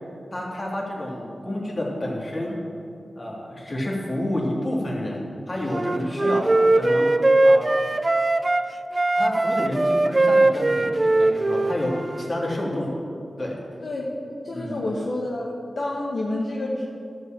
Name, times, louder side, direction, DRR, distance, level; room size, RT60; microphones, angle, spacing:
voice 1, 0.3-2.6 3.2-6.5 6.7-7.1 7.4-7.6 9.2-12.9 13.4-13.6 14.5-14.8, left 1 dB, 40° left, -4 dB, 3.1 m, -29 dB
Wind instrument woodwind instrument, 5.7-8.6 8.9-12.3, right 2 dB, 35° right, 0.4 m, -20 dB
voice 2, 13.8-15.5 15.8-16.9, left 1 dB, 70° left, -3 dB, 1.2 m, -29 dB
12.0 x 5.5 x 7.4 m, 2.6 s
cardioid pair, 45°, 0 cm